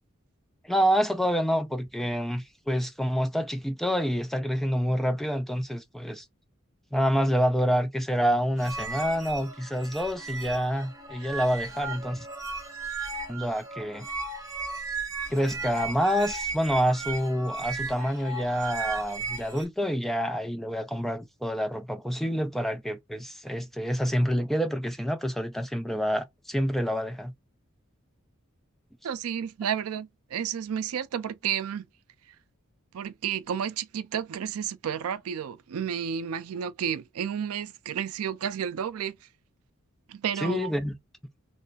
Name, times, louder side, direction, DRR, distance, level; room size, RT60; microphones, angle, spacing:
voice 1, 0.6-6.2 6.9-12.3 13.3-14.1 15.3-27.3 40.4-40.9, equal, ahead, 0.4 m, -27 dB
sound 1, 8.6-19.6, right 3 dB, 15° right, 0.8 m, -36 dB
voice 2, 29.0-31.9 32.9-39.2 40.1-40.7, right 8 dB, 85° right, 0.4 m, -31 dB
3.1 x 2.3 x 4.0 m
head